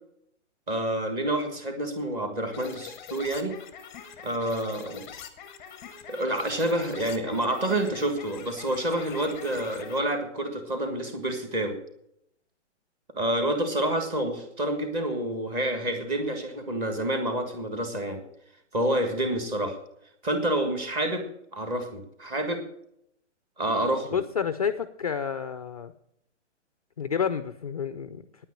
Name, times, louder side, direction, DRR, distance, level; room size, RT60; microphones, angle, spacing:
voice 1, 0.7-3.5 4.2-5.0 6.1-11.8 13.2-18.2 18.7-19.8 20.2-21.3 21.5-22.6 23.6-24.2, right 1 dB, 15° right, 6 dB, 1.6 m, -28 dB
sound 1, 2.5-10.0, left 7 dB, 10° left, 0.9 m, -44 dB
voice 2, 24.1-25.9 27.0-28.3, left 7 dB, 30° left, 11 dB, 0.5 m, -29 dB
9.8 x 9.2 x 8.7 m, 0.73 s
hypercardioid pair, 170°, 36 cm